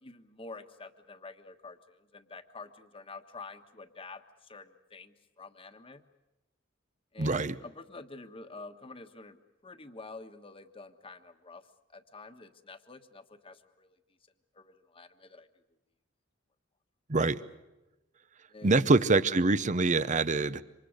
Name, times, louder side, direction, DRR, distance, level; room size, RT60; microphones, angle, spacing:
voice 1, 0.0-6.0 7.1-14.0 14.5-15.5 18.5-18.9, left 3 dB, 30° left, 8 dB, 1.4 m, -48 dB
voice 2, 7.2-7.6 17.1-17.4 18.6-20.6, right 3 dB, 40° right, 15 dB, 0.8 m, -25 dB
27.5 x 25.5 x 6.5 m, 1.0 s
head